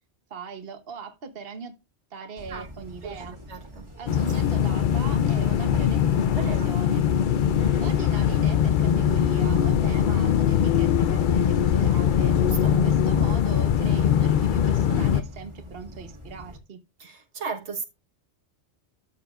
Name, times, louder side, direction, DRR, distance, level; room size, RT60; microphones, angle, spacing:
voice 1, 0.3-1.7 2.1-3.4 4.0-7.0 7.8-12.3 12.7-16.8, right 5 dB, 60° right, 1.3 m, -40 dB
sound 1, 2.4-16.6, left 1 dB, 25° right, 1.8 m, -42 dB
voice 2, 3.5-3.8 6.3-6.7 7.6-7.9 12.3-12.7 17.0-17.8, right 4 dB, 85° right, 1.7 m, -36 dB
sound 2, 4.1-15.2, left 9 dB, 55° left, 0.6 m, -22 dB
13.0 x 6.8 x 2.5 m
omnidirectional pair, 1.1 m